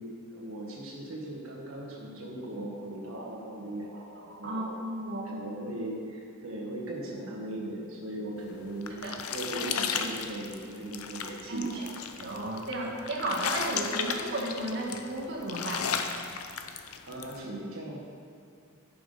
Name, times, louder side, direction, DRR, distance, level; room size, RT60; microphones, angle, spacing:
voice 1, 0.0-4.7 5.2-11.9 17.1-18.0, right 1 dB, 75° right, -3 dB, 1.5 m, -38 dB
voice 2, 4.4-5.4 8.9-9.2 11.5-11.8 12.2-15.9, right 1 dB, 55° right, -4 dB, 1.7 m, -33 dB
sound 1, 8.5-17.4, left 7 dB, 90° left, 0.6 m, -35 dB
11.0 x 5.8 x 5.4 m, 2.3 s
head